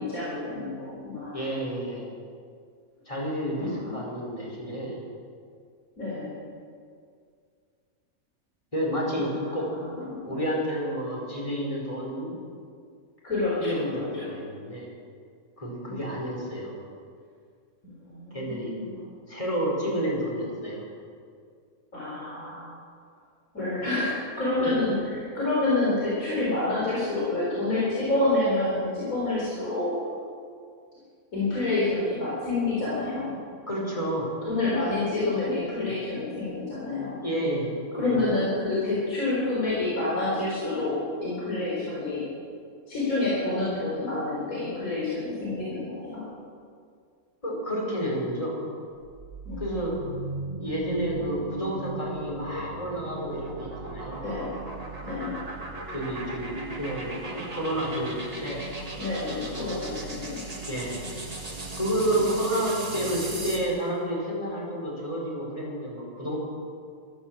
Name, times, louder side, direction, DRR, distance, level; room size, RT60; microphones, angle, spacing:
voice 1, 0.0-1.4 3.6-4.0 4.6-4.8 6.0-6.3 9.3-10.5 13.2-14.4 15.8-16.2 17.8-19.0 21.9-22.6 23.5-29.9 31.3-33.4 34.4-37.2 37.9-40.9 41.2-42.2 42.9-46.2 49.4-50.0 54.2-54.5 55.0-55.3 59.0-60.4, left 2 dB, 70° left, -7 dB, 4.6 m, -28 dB
voice 2, 1.3-2.0 3.1-4.9 8.7-9.7 10.3-12.3 13.6-14.9 15.6-16.8 18.3-18.7 19.3-20.8 23.6-23.7 24.6-24.7 33.7-34.3 37.2-38.3 47.4-48.6 49.6-50.0 50.6-54.2 55.9-58.6 60.7-61.0 61.7-66.4, right 1 dB, 20° left, -3 dB, 4.6 m, -30 dB
sound 1, 49.0-63.7, right 2 dB, 25° right, 1.9 m, -37 dB
13.5 x 13.5 x 7.3 m, 2.2 s
omnidirectional pair, 1.5 m